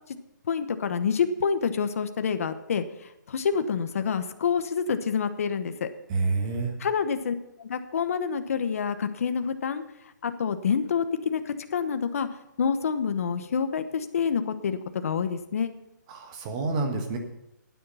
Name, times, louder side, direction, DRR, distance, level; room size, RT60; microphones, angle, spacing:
voice 1, 0.5-5.9 6.8-9.8 10.2-12.3 12.6-15.7, left 6 dB, 50° left, 10 dB, 1.0 m, -27 dB
voice 2, 6.1-6.7 16.1-17.2, right 3 dB, 20° right, 4 dB, 1.4 m, -28 dB
12.5 x 9.6 x 5.6 m, 0.87 s
hypercardioid pair, 165°, 10 cm